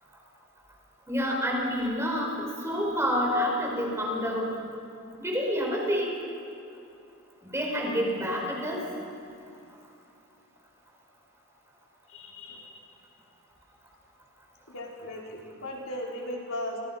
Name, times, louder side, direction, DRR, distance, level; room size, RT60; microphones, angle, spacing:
voice 1, 1.1-4.6 5.2-6.1 7.4-8.9, equal, 15° right, -1 dB, 5.3 m, -28 dB
voice 2, 12.1-12.8 14.7-16.8, left 1 dB, 70° left, -2 dB, 4.6 m, -37 dB
29.5 x 27.0 x 5.8 m, 2.6 s
head